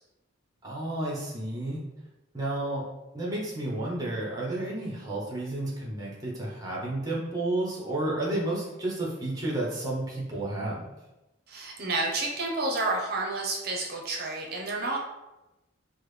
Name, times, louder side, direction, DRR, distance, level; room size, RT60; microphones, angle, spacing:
voice 1, 0.6-1.8 2.3-2.8 3.1-10.9, right 1 dB, 20° right, -4 dB, 0.8 m, -31 dB
voice 2, 11.5-15.0, right 2 dB, 50° right, -1 dB, 0.7 m, -30 dB
3.6 x 2.1 x 3.2 m, 1.0 s
head